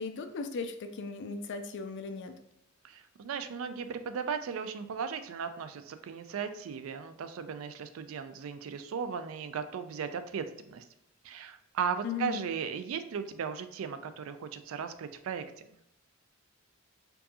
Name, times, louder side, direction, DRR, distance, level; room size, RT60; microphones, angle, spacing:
voice 1, 0.0-2.3 12.0-12.4, left 5 dB, 60° left, 7 dB, 0.4 m, -37 dB
voice 2, 2.8-10.9 11.2-15.6, right 6 dB, 70° right, 10 dB, 0.3 m, -36 dB
4.5 x 2.6 x 2.7 m, 0.78 s
head